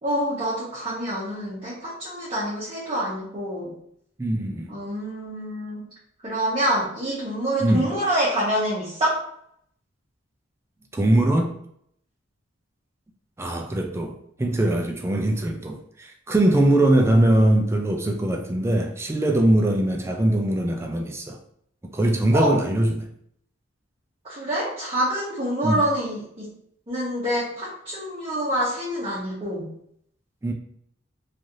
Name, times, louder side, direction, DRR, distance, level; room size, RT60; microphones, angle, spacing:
voice 1, 0.0-3.7 4.7-5.9 6.2-9.2 22.3-22.5 24.2-26.5 26.9-29.7, right 1 dB, 30° right, -8 dB, 0.8 m, -26 dB
voice 2, 4.2-4.7 7.6-7.8 10.9-11.5 13.4-21.4 21.9-23.1 25.6-25.8 30.4-30.5, right 1 dB, 15° right, 3 dB, 0.3 m, -21 dB
3.2 x 2.4 x 2.6 m, 0.69 s
head